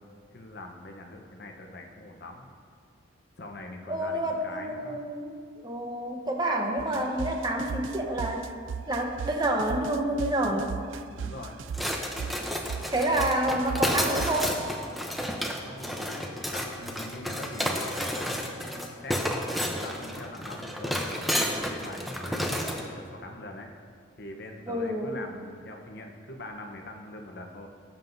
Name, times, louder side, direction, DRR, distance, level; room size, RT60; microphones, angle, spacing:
voice 1, 0.3-2.5 3.4-5.0 11.1-11.6 15.6-23.7 24.2-27.7, left 1 dB, 50° left, 2 dB, 0.9 m, -43 dB
voice 2, 3.9-8.5 8.9-10.7 12.9-14.6 24.7-25.2, right 1 dB, 20° right, 2 dB, 0.9 m, -28 dB
sound 1, 6.8-14.7, right 6 dB, 70° right, 0.3 m, -37 dB
sound 2, 11.7-22.9, equal, ahead, 0.6 m, -31 dB
18.5 x 7.4 x 2.7 m, 2.1 s
head